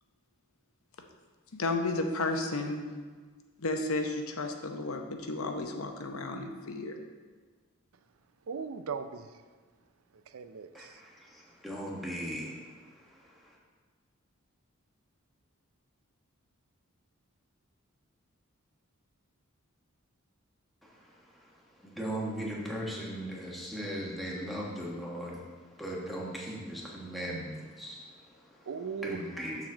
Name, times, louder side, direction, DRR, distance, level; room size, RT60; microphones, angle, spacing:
voice 1, 1.5-2.9 3.6-6.9, left 2 dB, 75° left, 4 dB, 0.8 m, -33 dB
voice 2, 8.5-9.4 10.1-11.0 28.7-29.2, right 6 dB, 75° right, 10 dB, 0.5 m, -38 dB
voice 3, 10.7-12.5 21.8-25.4 25.8-28.0 29.0-29.6, equal, ahead, -4 dB, 1.2 m, -37 dB
7.2 x 4.1 x 6.2 m, 1.5 s
head